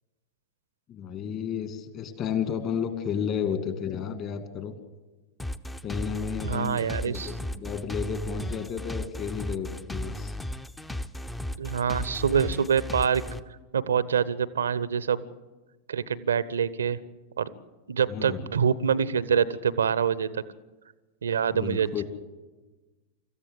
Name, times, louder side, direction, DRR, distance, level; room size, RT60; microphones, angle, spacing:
voice 1, 0.9-4.8 5.8-10.4 18.1-18.5 21.5-22.0, left 7 dB, 35° left, 8 dB, 2.4 m, -32 dB
sound 1, 5.4-13.4, left 1 dB, 5° left, 0.8 m, -35 dB
voice 2, 6.4-7.3 11.6-13.2 13.7-15.2 15.9-17.0 17.4-17.5 17.9-20.4 21.2-22.0, right 7 dB, 70° right, 18 dB, 0.8 m, -25 dB
25.5 x 14.5 x 7.8 m, 1.2 s
figure-of-eight pair, 90°, 0 cm